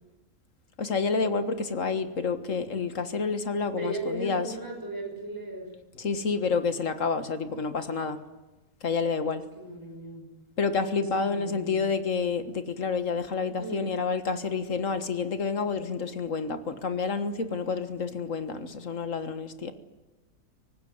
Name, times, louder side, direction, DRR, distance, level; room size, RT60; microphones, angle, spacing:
voice 1, 0.8-4.5 6.0-8.2 8.8-9.4 10.6-19.7, left 4 dB, 55° left, 10 dB, 1.9 m, -29 dB
voice 2, 3.8-5.7 9.5-10.2 11.0-11.8 13.6-13.9, right 1 dB, 10° right, 2 dB, 6.1 m, -36 dB
24.5 x 19.0 x 9.5 m, 1.2 s
omnidirectional pair, 1.6 m